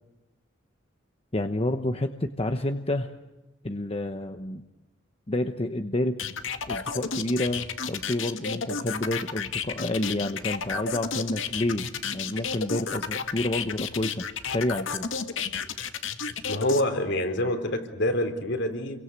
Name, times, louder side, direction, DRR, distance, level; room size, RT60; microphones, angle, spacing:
voice 1, 1.3-3.1 3.6-4.6 5.3-6.2 6.7-14.2 14.5-15.1, left 1 dB, 30° left, 7 dB, 1.1 m, -29 dB
sound 1, 6.2-16.8, left 6 dB, 85° left, 1.9 m, -31 dB
voice 2, 16.5-19.0, left 1 dB, 65° left, 6 dB, 3.8 m, -26 dB
30.0 x 23.5 x 8.3 m, 1.0 s
head